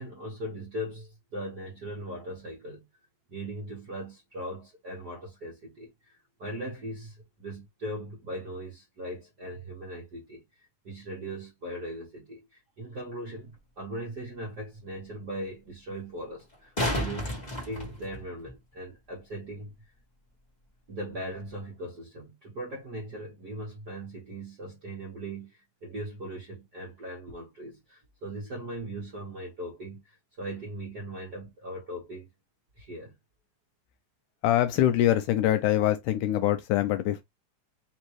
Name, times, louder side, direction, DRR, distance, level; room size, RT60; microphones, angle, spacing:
voice 1, 0.0-2.9 3.3-19.9 20.9-32.3 32.8-33.1, right 1 dB, 55° right, 1.1 m, -39 dB
sound 1, 13.5-13.6 16.4-18.5 21.4-21.5, left 1 dB, 50° left, 0.5 m, -32 dB
voice 2, 34.4-37.2, left 13 dB, 80° left, 1.9 m, -24 dB
5.3 x 2.9 x 3.0 m
omnidirectional pair, 4.0 m